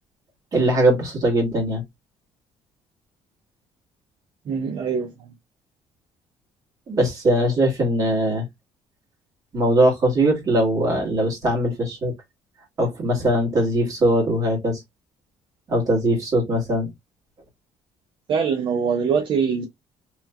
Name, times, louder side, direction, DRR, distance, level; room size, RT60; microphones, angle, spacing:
voice 1, 0.5-1.8 6.9-8.4 9.5-12.1 12.8-14.8 15.7-16.9, right 1 dB, 30° right, 1.5 m, -21 dB
voice 2, 4.5-5.1 18.3-19.7, right 6 dB, 45° right, 0.6 m, -23 dB
3.1 x 3.0 x 2.2 m
cardioid pair, 160°, 11 cm